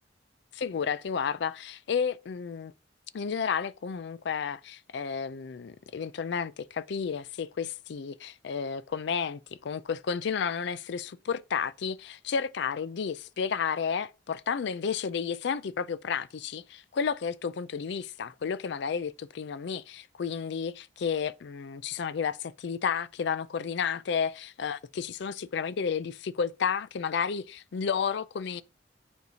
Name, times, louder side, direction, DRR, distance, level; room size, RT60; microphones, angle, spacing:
voice 1, 0.5-2.7 3.1-28.6, left 6 dB, 60° left, 0.4 m, -32 dB
9.4 x 4.5 x 2.7 m
head